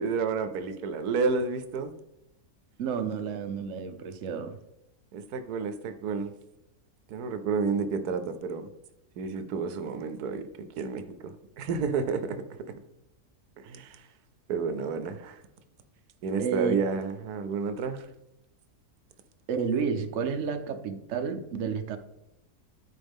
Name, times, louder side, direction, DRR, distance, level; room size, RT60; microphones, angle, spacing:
voice 1, 0.0-1.9 5.1-6.3 7.1-8.7 9.2-12.4 13.6-14.0 14.5-15.4 16.2-18.1, right 5 dB, 85° right, 1.2 m, -30 dB
voice 2, 2.8-4.6 16.4-16.8 19.5-22.0, right 6 dB, 60° right, 1.0 m, -30 dB
13.0 x 4.3 x 3.6 m
omnidirectional pair, 1.6 m